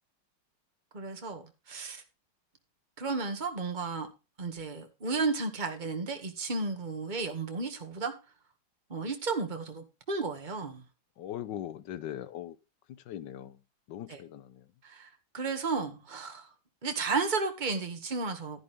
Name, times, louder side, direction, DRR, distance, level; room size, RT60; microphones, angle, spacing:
voice 1, 0.9-2.0 3.0-4.1 4.4-8.1 8.9-10.8 14.1-14.2 14.8-16.5 16.8-18.6, right 4 dB, 20° right, 1.9 m, -33 dB
voice 2, 11.2-12.6 12.9-13.6 13.9-14.7, left 11 dB, 60° left, 1.5 m, -40 dB
12.0 x 10.5 x 3.6 m
omnidirectional pair, 2.3 m